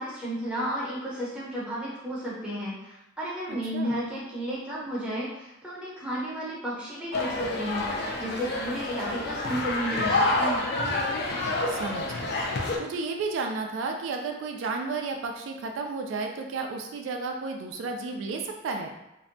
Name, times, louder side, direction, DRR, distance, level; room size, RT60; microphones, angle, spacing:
voice 1, 0.0-10.7, equal, 5° right, -7 dB, 0.6 m, -33 dB
voice 2, 3.5-3.9 11.7-12.5 12.8-19.0, right 4 dB, 75° right, 3 dB, 0.3 m, -33 dB
sound 1, 7.1-12.8, left 2 dB, 55° left, 0.4 m, -28 dB
2.5 x 2.1 x 2.6 m, 0.90 s
head